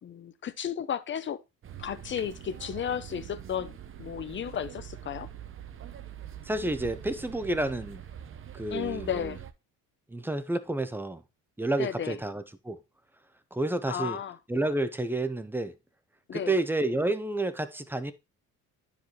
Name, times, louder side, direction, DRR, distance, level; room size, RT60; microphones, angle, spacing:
voice 1, 0.0-1.4 1.8-5.3 8.7-9.4 11.8-12.2 13.9-14.4 16.3-16.5, left 8 dB, 35° left, 0.8 m, -34 dB
sound 1, 1.6-9.5, right 10 dB, 40° right, 0.8 m, -44 dB
voice 2, 6.4-8.0 8.5-9.3 10.1-11.2 11.6-12.8 13.5-14.2 14.5-15.8 16.3-18.1, right 2 dB, 5° right, 0.7 m, -30 dB
10.0 x 5.0 x 2.9 m
cardioid pair, 110°, 33 cm